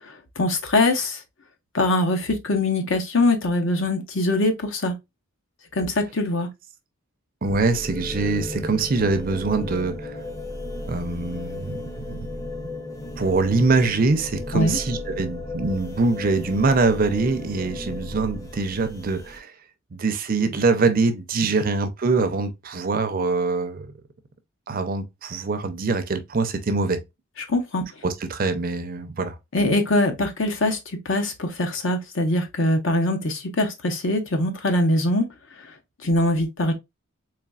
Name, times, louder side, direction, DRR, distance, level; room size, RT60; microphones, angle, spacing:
voice 1, 0.4-1.2 1.7-4.9 5.8-6.5 14.5-14.8 27.5-27.8 29.5-30.8 31.1-35.3 36.0-36.7, left 1 dB, 60° left, 0.8 m, -22 dB
sound 1, 7.4-19.4, left 2 dB, 15° left, 0.6 m, -35 dB
voice 2, 7.4-10.2 10.9-12.3 13.2-19.5 19.9-23.9 24.7-27.0 28.0-29.4, right 3 dB, 40° right, 0.5 m, -23 dB
4.0 x 3.0 x 2.3 m
head